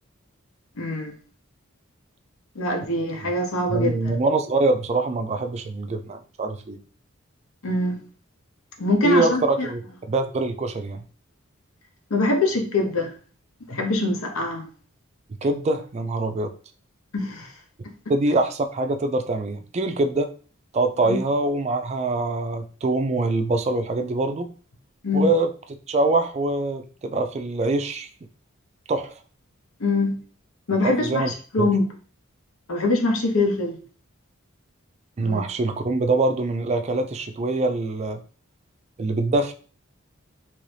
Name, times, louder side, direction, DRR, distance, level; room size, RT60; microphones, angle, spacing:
voice 1, 0.8-1.2 2.6-3.9 7.6-8.0 8.8-9.7 12.1-13.1 13.7-14.6 17.1-17.5 17.8-17.9 21.0-21.2 25.0-25.3 29.8-30.2 30.7-31.3 31.5-31.9 32.7-33.8 35.2-35.4, left 2 dB, 85° left, 0.8 m, -23 dB
voice 2, 3.7-6.8 9.0-9.8 10.1-11.0 15.4-16.5 18.1-20.3 20.7-24.5 25.1-25.5 25.9-28.1 28.9-29.2 30.8-31.3 31.6-31.7 35.2-38.2 39.0-39.5, right 2 dB, 30° right, 0.3 m, -24 dB
3.1 x 2.6 x 3.2 m
head